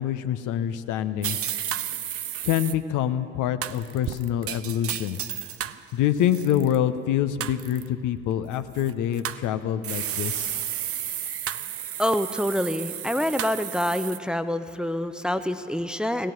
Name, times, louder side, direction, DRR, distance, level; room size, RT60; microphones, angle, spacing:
voice 1, 0.0-1.5 2.4-5.2 5.9-10.5, left 10 dB, 65° left, 11 dB, 0.8 m, -26 dB
sound 1, 1.2-2.7 3.6-5.8 6.2-6.8 7.4-7.9 8.8-9.4 9.8-14.2, right 10 dB, 45° right, 0.6 m, -32 dB
voice 2, 12.0-16.3, equal, ahead, 10 dB, 0.7 m, -26 dB
16.5 x 8.8 x 9.2 m, 2.3 s
hypercardioid pair, 45°, 33 cm